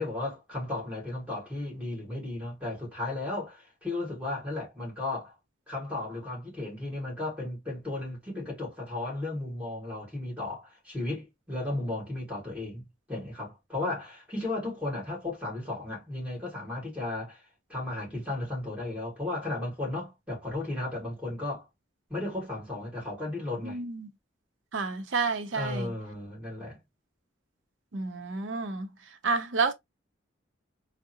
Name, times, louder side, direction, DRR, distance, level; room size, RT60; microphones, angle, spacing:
voice 1, 0.0-5.3 5.7-17.4 17.7-21.6 22.1-23.8 25.5-26.8, left 2 dB, 5° right, 1.9 m, -35 dB
voice 2, 23.6-24.1 24.7-25.9 27.9-28.9 29.2-29.7, right 4 dB, 75° right, 0.6 m, -30 dB
3.6 x 2.1 x 2.7 m
head